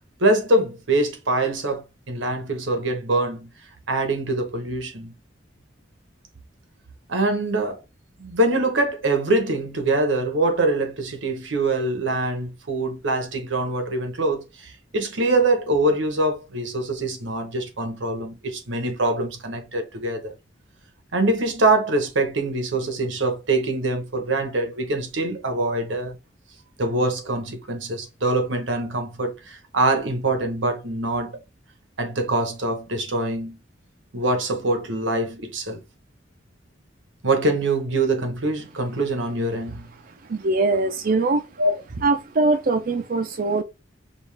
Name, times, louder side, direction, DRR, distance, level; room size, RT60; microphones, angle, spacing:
voice 1, 0.2-3.5 3.9-5.1 7.1-7.8 8.2-20.3 21.1-26.2 26.8-31.4 32.0-33.6 34.1-35.8 37.2-39.9 41.6-41.8, right 2 dB, 85° right, 1.1 m, -24 dB
voice 2, 40.0-41.6 42.0-43.6, right 3 dB, 50° right, 0.5 m, -22 dB
5.4 x 2.4 x 3.3 m
head